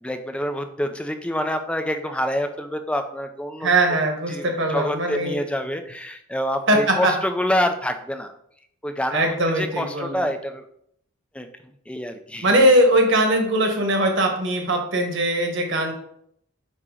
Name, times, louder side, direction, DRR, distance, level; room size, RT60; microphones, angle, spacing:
voice 1, 0.0-3.7 4.3-8.3 8.8-10.6 11.3-12.5, equal, 5° left, 7 dB, 0.4 m, -27 dB
voice 2, 3.6-5.4 6.7-7.1 9.1-10.2 12.4-15.9, right 1 dB, 60° right, 3 dB, 1.4 m, -20 dB
8.6 x 2.9 x 4.9 m, 0.72 s
head